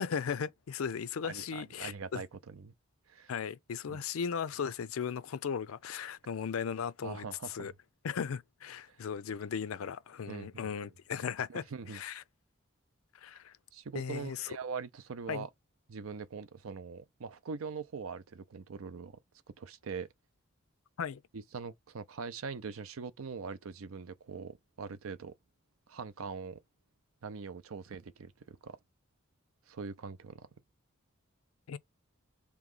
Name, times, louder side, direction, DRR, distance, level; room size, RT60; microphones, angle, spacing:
voice 1, 0.0-2.2 3.3-7.7 8.0-11.6 11.9-12.2 13.2-13.5 13.9-14.5 15.3-15.5 21.0-21.2 31.7-31.8, left 7 dB, 85° left, 0.4 m, -37 dB
voice 2, 1.2-2.7 3.1-3.3 3.9-4.0 7.0-7.7 8.9-9.0 10.3-10.7 11.5-12.0 13.7-15.5 15.9-19.2 19.6-20.1 21.3-25.3 25.9-26.6 27.2-28.8 29.7-30.5, right 5 dB, 85° right, 0.6 m, -42 dB
3.5 x 3.0 x 3.8 m
head